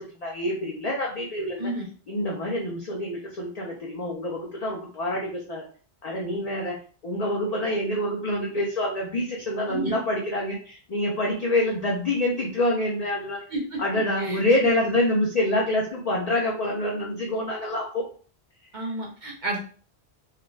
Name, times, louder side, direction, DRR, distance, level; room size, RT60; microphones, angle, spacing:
voice 1, 0.0-1.7 2.1-5.6 6.0-6.8 7.0-13.4 13.8-18.0, left 1 dB, 50° left, -2 dB, 0.5 m, -26 dB
voice 2, 18.7-19.6, right 2 dB, 50° right, 0 dB, 0.7 m, -30 dB
2.4 x 2.2 x 3.1 m, 0.41 s
omnidirectional pair, 1.1 m